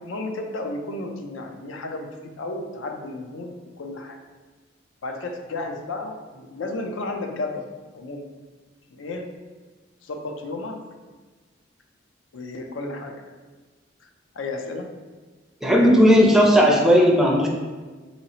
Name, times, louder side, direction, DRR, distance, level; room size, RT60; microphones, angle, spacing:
voice 1, 0.0-4.2 5.0-8.3 8.9-9.3 10.0-10.9 12.3-13.2 14.0-14.1 14.3-14.9, left 2 dB, 85° left, 4 dB, 0.5 m, -33 dB
voice 2, 15.6-17.5, equal, 5° right, -1 dB, 0.4 m, -15 dB
3.8 x 2.9 x 2.8 m, 1.3 s
head